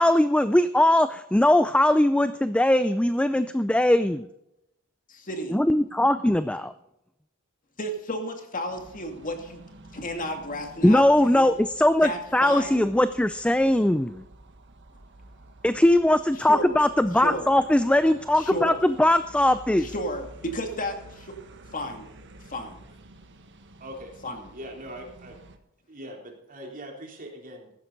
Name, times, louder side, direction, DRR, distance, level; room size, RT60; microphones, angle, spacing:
voice 1, 0.0-4.3 5.5-6.7 10.8-14.2 15.6-19.9, left 1 dB, 5° left, 12 dB, 0.4 m, -20 dB
voice 2, 5.1-5.6 7.8-9.6 9.9-11.5 12.0-12.9 16.4-16.8 17.2-17.5 18.4-18.8 19.8-21.3 21.7-22.1 22.5-22.8 24.2-24.4, equal, 40° left, 4 dB, 2.4 m, -33 dB
sound 1, 8.7-25.6, right 2 dB, 60° right, 1.5 m, -50 dB
voice 3, 23.8-24.1 24.5-25.4 25.9-27.7, equal, 40° right, 1 dB, 3.5 m, -41 dB
15.5 x 12.0 x 4.0 m, 0.84 s
head